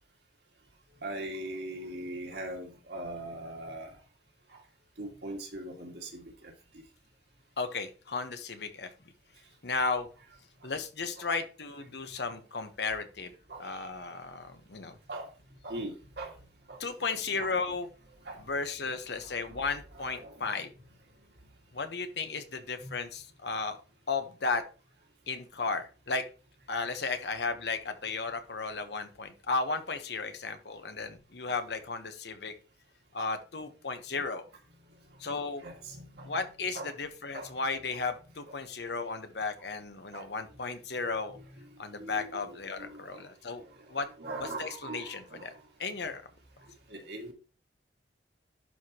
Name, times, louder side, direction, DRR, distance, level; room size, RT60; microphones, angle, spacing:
voice 1, 1.0-3.9 5.0-6.2 13.5-13.7 15.1-15.3 15.6-16.3 16.7-16.8 17.4-17.5 18.3-18.4 19.5-19.6 20.0-20.4 22.8-22.9 35.6-36.3 36.7-36.9 37.3-37.5 40.1-40.2 42.0-43.2 44.2-45.5 46.0-46.1 46.9-47.3, right 1 dB, 65° right, 1 dB, 2.0 m, -40 dB
voice 2, 7.6-8.9 9.6-10.1 10.6-13.3 13.6-15.0 16.8-17.9 18.4-20.7 21.7-23.8 24.1-24.6 25.3-26.2 26.7-32.5 33.1-34.5 35.2-35.6 36.2-41.4 41.8-43.6 43.9-44.1 44.4-45.5 45.8-46.2, left 4 dB, 65° left, 8 dB, 1.0 m, -34 dB
11.5 x 4.8 x 2.9 m, 0.36 s
head